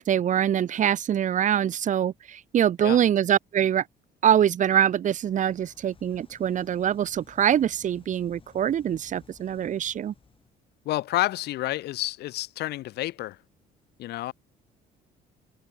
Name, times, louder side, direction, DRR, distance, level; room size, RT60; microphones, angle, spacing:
voice 1, 0.0-3.8 4.2-10.1, right 10 dB, 50° right, 1.1 m, -24 dB
sound 1, 4.9-10.6, left 5 dB, 30° left, 6.4 m, -56 dB
voice 2, 10.9-13.4 14.0-14.3, left 16 dB, 75° left, 1.9 m, -29 dB
cardioid pair, 110°, 17 cm